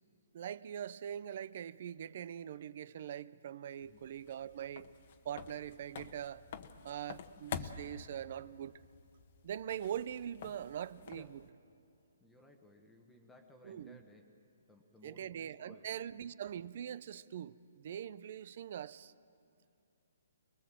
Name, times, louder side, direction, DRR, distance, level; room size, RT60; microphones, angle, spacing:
voice 1, 0.3-4.9 5.2-6.4 6.8-8.8 9.4-11.4 13.6-14.0 15.0-19.1, right 10 dB, 50° right, 18 dB, 0.6 m, -42 dB
sound 1, 3.8-11.5, left 7 dB, 45° left, 1.1 m, -49 dB
voice 2, 12.2-15.9 16.2-16.3, left 1 dB, 5° left, 3 dB, 1.2 m, -60 dB
24.0 x 21.0 x 7.6 m, 2.7 s
hypercardioid pair, 155°, 0 cm